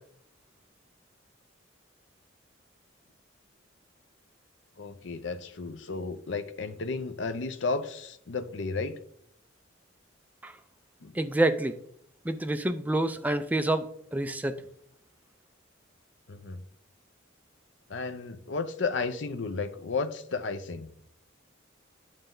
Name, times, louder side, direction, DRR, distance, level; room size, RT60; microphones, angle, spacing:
voice 1, 4.8-9.0 11.0-11.1 16.3-16.6 17.9-20.9, left 4 dB, 65° left, 11 dB, 0.6 m, -33 dB
voice 2, 11.2-11.7 12.3-14.6, right 1 dB, 10° right, 8 dB, 0.4 m, -27 dB
9.0 x 6.5 x 3.8 m, 0.70 s
head